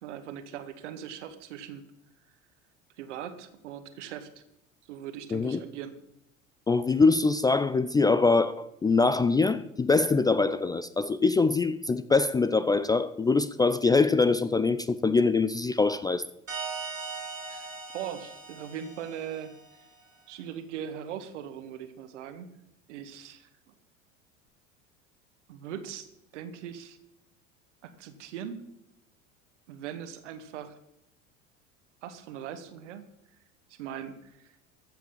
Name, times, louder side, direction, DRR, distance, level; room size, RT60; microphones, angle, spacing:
voice 1, 0.0-1.8 3.0-4.4 4.9-6.0 17.5-17.7 17.9-19.5 20.3-22.5 22.9-23.7 25.5-27.0 27.8-28.6 29.7-30.8 32.0-33.1 33.7-34.6, right 9 dB, 65° right, 1.7 m, -40 dB
voice 2, 5.3-5.6 6.7-16.2, left 4 dB, 10° left, 0.4 m, -23 dB
sound 1, 16.5-19.9, right 4 dB, 85° right, 3.7 m, -39 dB
14.5 x 8.1 x 7.3 m
figure-of-eight pair, 75°, 38 cm